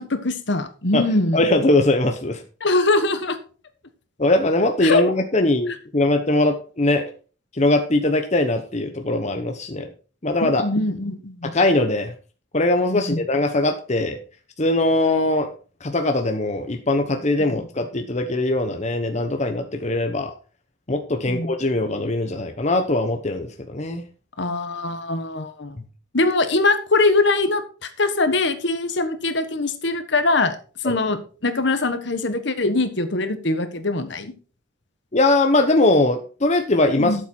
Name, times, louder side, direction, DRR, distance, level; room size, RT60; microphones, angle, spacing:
voice 1, 0.0-1.4 2.6-3.4 4.8-5.0 10.4-11.5 12.9-13.2 17.5-17.6 21.2-21.5 24.4-25.8 26.1-30.6 30.8-34.3 37.0-37.2, left 2 dB, 60° left, 10 dB, 1.4 m, -22 dB
voice 2, 1.3-2.4 4.2-7.0 7.5-9.9 10.2-10.7 11.4-12.1 12.5-14.2 14.6-15.5 15.8-20.3 20.9-24.0 30.8-31.0 35.1-37.3, left 2 dB, 35° left, 5 dB, 1.0 m, -21 dB
12.5 x 7.5 x 4.5 m, 0.38 s
head